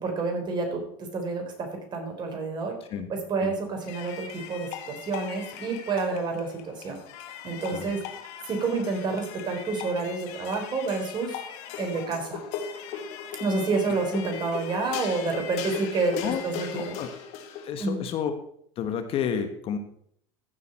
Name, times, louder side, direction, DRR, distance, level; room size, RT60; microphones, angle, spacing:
voice 1, 0.0-0.8 1.1-2.8 3.1-7.0 7.4-8.0 8.5-11.4 11.8-12.4 13.4-16.9 17.8-18.1, right 3 dB, 35° right, 4 dB, 3.7 m, -29 dB
sound 1, 3.9-17.7, left 7 dB, 60° left, 2.0 m, -39 dB
voice 2, 16.7-17.1 17.6-18.3 18.8-19.8, left 8 dB, 45° left, 8 dB, 1.4 m, -30 dB
15.0 x 6.8 x 4.4 m, 0.67 s
supercardioid pair, 105°, 13 cm